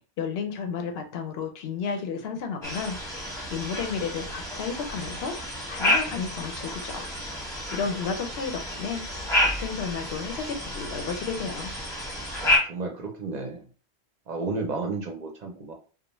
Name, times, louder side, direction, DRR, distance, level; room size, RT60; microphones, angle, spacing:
voice 1, 0.2-3.0 3.5-7.1 7.7-9.0 9.6-11.7, left 5 dB, 70° left, 6 dB, 0.8 m, -32 dB
sound 1, 2.6-12.6, left 1 dB, 5° left, 0.9 m, -30 dB
voice 2, 12.4-13.7 14.3-15.7, right 3 dB, 50° right, 2 dB, 0.6 m, -32 dB
2.4 x 2.1 x 2.9 m, 0.37 s
omnidirectional pair, 1.1 m